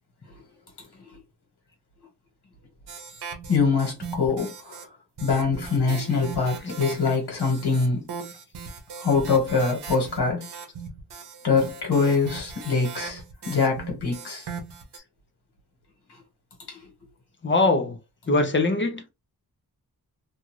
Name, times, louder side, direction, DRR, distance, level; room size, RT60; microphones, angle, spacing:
sound 1, 2.9-4.8 5.2-15.0, right 5 dB, 90° right, 0.8 m, -39 dB
voice 1, 3.5-4.9 5.2-8.1 9.0-10.5 11.4-14.5 16.1-16.2 16.7-16.9, left 4 dB, 80° left, 1.5 m, -24 dB
voice 2, 17.4-18.0 18.3-19.1, left 2 dB, 30° left, 0.6 m, -22 dB
2.6 x 2.4 x 3.0 m
wide cardioid pair, 125°, 39 cm